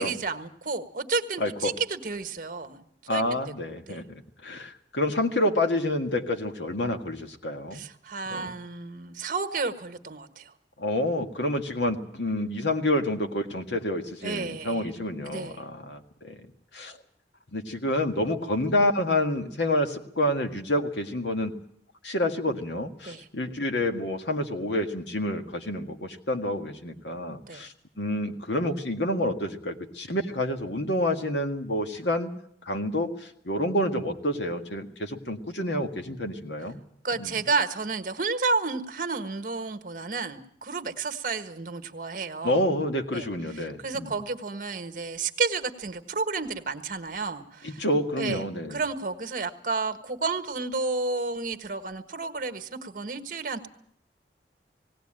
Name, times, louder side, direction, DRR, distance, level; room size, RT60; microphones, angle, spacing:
voice 1, 0.0-2.8 3.1-3.2 3.9-4.0 7.7-10.5 14.2-14.9 15.3-15.6 23.0-23.3 27.4-27.6 37.0-42.6 43.1-43.3 43.5-47.8 48.1-48.4 48.7-53.7, right 4 dB, 50° right, 8 dB, 1.4 m, -31 dB
voice 2, 1.4-1.7 3.1-7.8 8.3-8.5 10.8-16.4 16.7-17.0 17.5-21.5 22.0-32.3 32.7-36.8 37.2-37.4 42.4-44.1 47.6-48.8, left 1 dB, 85° left, 6 dB, 1.9 m, -28 dB
19.0 x 17.5 x 8.9 m, 0.67 s
head